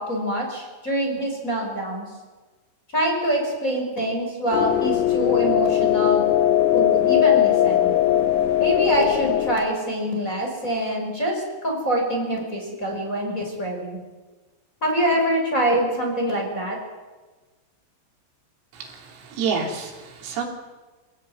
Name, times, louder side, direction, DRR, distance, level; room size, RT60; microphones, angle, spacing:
voice 1, 0.0-2.1 2.9-6.3 6.7-7.9 8.6-14.0 14.8-16.8, equal, 15° left, -1 dB, 5.3 m, -25 dB
sound 1, 4.5-9.6, left 12 dB, 90° left, 3.8 m, -19 dB
voice 2, 18.7-20.5, right 5 dB, 85° right, 0 dB, 6.1 m, -29 dB
26.5 x 17.0 x 9.4 m, 1.3 s
omnidirectional pair, 5.8 m